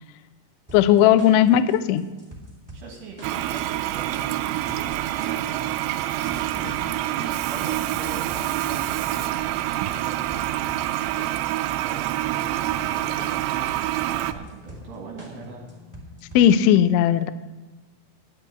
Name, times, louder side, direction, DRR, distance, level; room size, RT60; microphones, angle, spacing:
voice 1, 0.7-2.0 16.4-17.3, left 10 dB, 85° left, 12 dB, 2.8 m, -17 dB
sound 1, 0.7-16.7, equal, 15° right, 0.6 m, -44 dB
voice 2, 2.7-5.7 6.3-10.7 11.8-15.6, right 4 dB, 65° right, 0 dB, 3.1 m, -41 dB
Toilet flush, 3.2-14.3, right 14 dB, 85° right, 3.0 m, -26 dB
10.5 x 8.0 x 8.8 m, 1.2 s
omnidirectional pair, 5.9 m